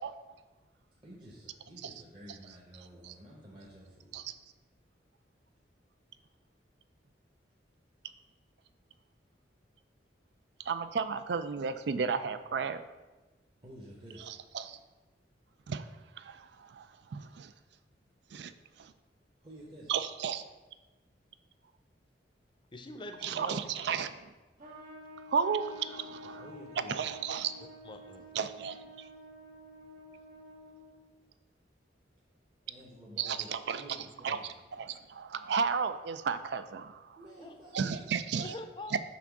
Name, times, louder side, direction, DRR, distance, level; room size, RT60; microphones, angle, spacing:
voice 1, 1.0-4.2 13.6-14.4 19.4-19.9 26.4-27.0 32.6-34.4 37.2-38.1, equal, 25° right, -5 dB, 0.9 m, -51 dB
voice 2, 10.7-12.8 14.3-14.8 15.7-15.9 16.2-17.5 18.3-18.5 18.8-18.9 19.9-20.4 23.2-24.3 25.3-26.4 26.9-27.5 28.4-29.1 33.2-33.8 34.2-37.2 37.7-38.5 38.9-39.0, right 6 dB, 65° right, 12 dB, 0.4 m, -34 dB
voice 3, 22.7-23.6 27.8-28.3 37.4-37.5 38.4-39.0, left 2 dB, 25° left, 6 dB, 0.6 m, -44 dB
Trumpet, 24.6-31.1, left 1 dB, 50° right, 1.8 m, -50 dB
5.9 x 3.6 x 6.0 m, 1.2 s
head